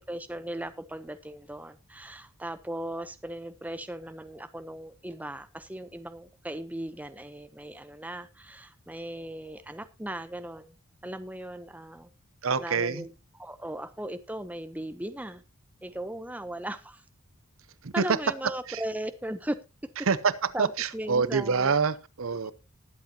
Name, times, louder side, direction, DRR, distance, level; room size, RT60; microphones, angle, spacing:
voice 1, 0.0-10.7 11.0-12.1 12.6-13.1 13.4-15.4 15.8-17.0 17.9-19.6 19.8-19.9 20.5-21.7 22.3-22.5, right 1 dB, 5° right, 0.8 m, -37 dB
voice 2, 12.4-13.0 17.8-18.2 18.7-18.8 20.0-22.5, right 5 dB, 70° right, 0.7 m, -26 dB
20.5 x 8.1 x 2.8 m
head